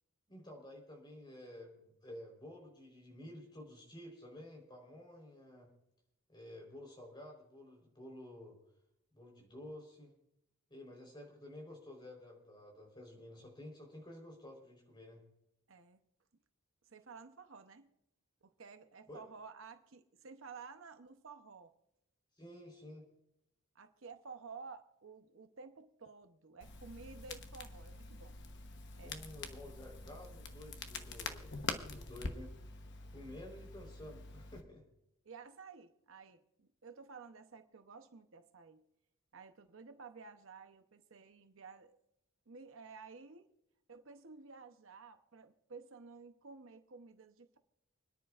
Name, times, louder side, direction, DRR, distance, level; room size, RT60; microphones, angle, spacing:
voice 1, 0.3-5.7 6.3-8.6 9.1-10.1 10.7-15.2 19.1-19.2 22.4-23.0 29.0-32.5 33.1-34.8, left 1 dB, 20° left, 1 dB, 3.9 m, -52 dB
voice 2, 15.7-16.0 16.8-17.9 18.4-21.7 23.7-28.3 28.8-29.2 35.2-38.8 39.3-42.0 42.5-43.5 43.9-47.6, right 5 dB, 60° right, 8 dB, 0.8 m, -53 dB
Crackle, 26.6-34.6, left 3 dB, 55° left, 1.0 m, -45 dB
29.5 x 10.5 x 2.5 m, 0.82 s
head